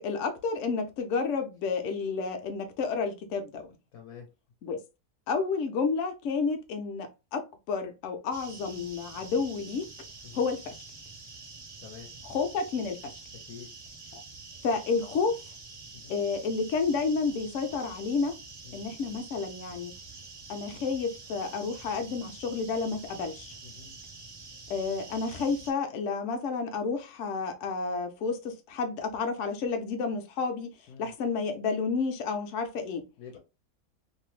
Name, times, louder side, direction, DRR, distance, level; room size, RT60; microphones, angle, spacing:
voice 1, 0.0-3.7 4.6-4.8 5.3-9.9 10.3-10.8 12.2-13.2 14.1-14.2 14.6-15.4 16.1-18.3 18.7-19.9 20.5-23.6 24.7-30.7 31.0-33.0, left 4 dB, 65° left, 0.9 m, -30 dB
voice 2, 3.9-4.3 10.2-10.4 11.8-12.1 13.5-13.7 15.9-16.2 18.6-18.9 23.6-23.9 30.9-31.1 33.2-33.4, left 7 dB, 80° left, 1.1 m, -47 dB
sound 1, 8.3-25.7, right 3 dB, 40° right, 0.5 m, -47 dB
2.7 x 2.0 x 3.0 m
omnidirectional pair, 1.6 m